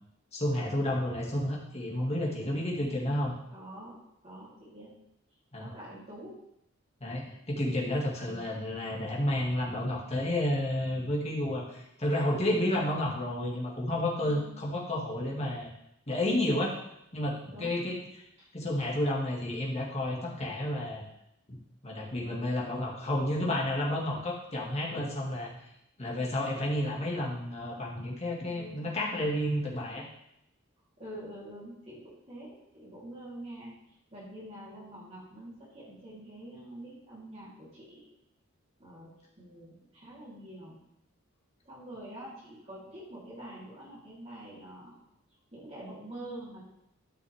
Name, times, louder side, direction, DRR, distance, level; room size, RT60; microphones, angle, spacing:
voice 1, 0.3-3.3 5.5-5.7 7.0-15.7 16.1-16.8 17.1-18.0 18.5-21.0 21.5-21.6 21.8-25.5 26.0-30.1, left 1 dB, 30° left, -3 dB, 2.2 m, -31 dB
voice 2, 2.4-2.8 3.5-4.0 4.2-4.9 5.6-6.4 8.2-8.4 17.5-17.8 18.4-18.5 28.5-28.9 31.0-33.7 34.1-38.0 38.8-39.1 39.4-40.8 41.6-44.9 45.5-46.6, right 1 dB, 35° right, -8 dB, 3.6 m, -46 dB
12.5 x 6.1 x 3.6 m, 0.79 s
head